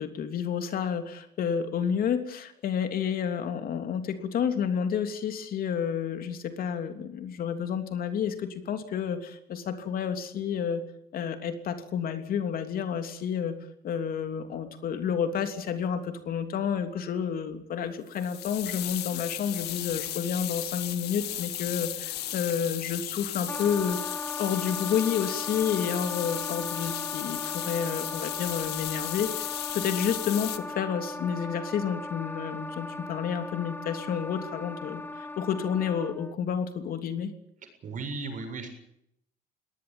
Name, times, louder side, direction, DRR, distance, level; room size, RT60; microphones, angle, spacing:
voice 1, 0.0-10.8 11.1-13.5 13.8-37.3, left 7 dB, 60° left, 8 dB, 3.2 m, -30 dB
sound 1, 18.1-30.6, left 13 dB, 75° left, 1.9 m, -35 dB
Wind instrument woodwind instrument, 23.5-36.4, left 2 dB, 10° left, 1.6 m, -38 dB
voice 2, 37.8-38.7, right 3 dB, 50° right, 7 dB, 7.4 m, -35 dB
22.5 x 19.0 x 8.9 m, 0.74 s
cardioid pair, 110°, 17 cm